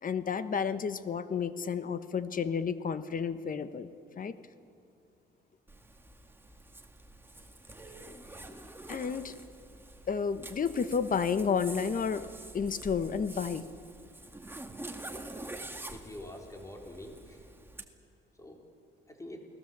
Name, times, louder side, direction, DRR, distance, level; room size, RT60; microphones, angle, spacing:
voice 1, 0.0-3.9 4.1-4.3 8.9-9.3 10.1-12.2 12.5-13.7, left 6 dB, 45° left, 12 dB, 1.2 m, -31 dB
Zipper (clothing), 5.7-17.9, right 2 dB, 10° right, 2.0 m, -46 dB
voice 2, 15.9-17.5 18.3-18.6 19.1-19.5, left 1 dB, 15° left, 1 dB, 4.1 m, -46 dB
29.5 x 19.0 x 7.5 m, 2.5 s
cardioid pair, 90°, 20 cm